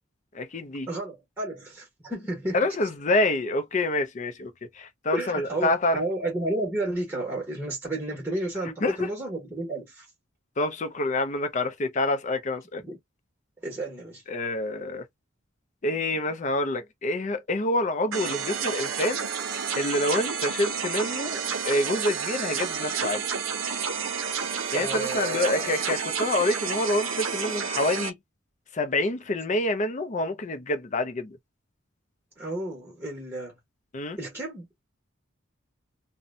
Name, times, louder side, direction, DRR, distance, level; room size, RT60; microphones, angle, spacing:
voice 1, 0.3-0.9 2.5-4.5 4.8-6.0 8.8-9.1 10.6-12.8 14.3-15.0 15.8-19.3 19.8-21.4 21.6-23.2 24.7-28.2 28.7-31.4 33.9-34.2, left 2 dB, 35° left, 0.5 m, -27 dB
voice 2, 0.9-2.7 5.1-10.1 12.8-13.0 13.6-14.2 24.7-25.7 32.4-33.5 34.2-34.7, right 1 dB, 10° right, 1.1 m, -32 dB
sound 1, 18.1-28.1, right 6 dB, 80° right, 0.6 m, -30 dB
2.7 x 2.1 x 2.4 m
head